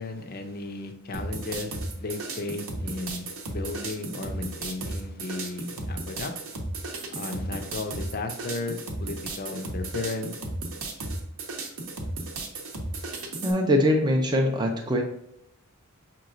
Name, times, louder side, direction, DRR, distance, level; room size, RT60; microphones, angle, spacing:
voice 1, 0.0-6.3 7.1-10.3, left 3 dB, 45° left, 5 dB, 0.5 m, -35 dB
sound 1, 1.1-13.5, right 2 dB, 65° right, 0.8 m, -34 dB
voice 2, 13.4-15.0, equal, 20° right, 2 dB, 0.5 m, -22 dB
5.6 x 3.0 x 2.5 m, 0.78 s
head